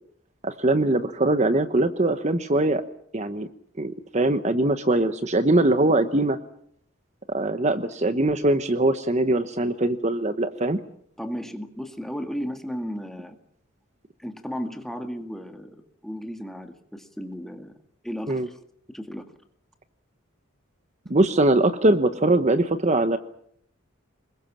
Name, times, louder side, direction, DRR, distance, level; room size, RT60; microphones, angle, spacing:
voice 1, 0.4-2.8 3.1-3.5 3.8-6.4 7.3-10.8 18.3-18.5 21.1-23.2, right 2 dB, 35° right, 10 dB, 1.1 m, -22 dB
voice 2, 11.2-13.4 14.2-17.8 18.0-18.6 18.9-19.3, equal, ahead, 6 dB, 2.0 m, -34 dB
25.5 x 21.5 x 7.4 m, 0.67 s
head